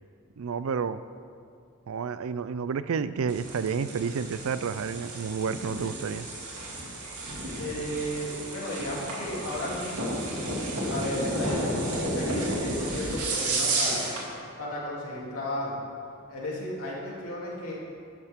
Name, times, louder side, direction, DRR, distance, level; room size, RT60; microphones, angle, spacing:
voice 1, 0.4-1.0 1.9-6.3, right 6 dB, 70° right, 14 dB, 0.4 m, -30 dB
sound 1, 3.3-14.3, right 1 dB, 85° right, 2.3 m, -32 dB
voice 2, 7.5-10.2 10.9-14.1 14.6-15.8 16.3-17.7, left 1 dB, 80° left, -5 dB, 3.0 m, -34 dB
12.5 x 10.0 x 3.7 m, 2.4 s
head